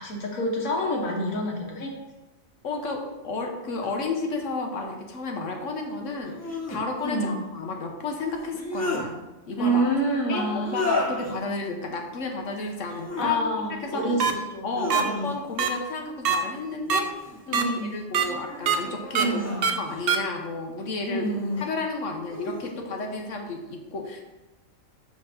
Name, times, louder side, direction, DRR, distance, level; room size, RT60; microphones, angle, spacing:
voice 1, 0.0-1.9 7.0-7.4 9.6-11.0 13.2-15.4 17.5-17.9 19.1-19.7 21.0-21.6, right 1 dB, 80° left, -1 dB, 1.6 m, -27 dB
voice 2, 2.6-9.9 10.3-13.4 13.8-14.0 14.6-19.4 19.7-21.3 21.6-24.2, left 3 dB, 65° left, 2 dB, 1.2 m, -32 dB
sound 1, 3.8-3.9 6.2-6.8 8.3-9.1 10.6-11.3 12.8-13.3 13.8-14.3 14.7-15.6 16.8-17.5 18.1-20.1 21.2-21.7 22.3-22.8, left 2 dB, 15° left, 0.8 m, -34 dB
sound 2, 14.2-14.3 14.9-15.0 15.6-15.7 16.3-16.4 16.9-17.0 17.5-17.6 18.1-18.3 18.7-18.8 19.2-19.3 19.6-19.7 20.1-20.2, right 7 dB, 60° right, 0.7 m, -22 dB
5.2 x 3.6 x 5.7 m, 1.1 s
omnidirectional pair, 1.4 m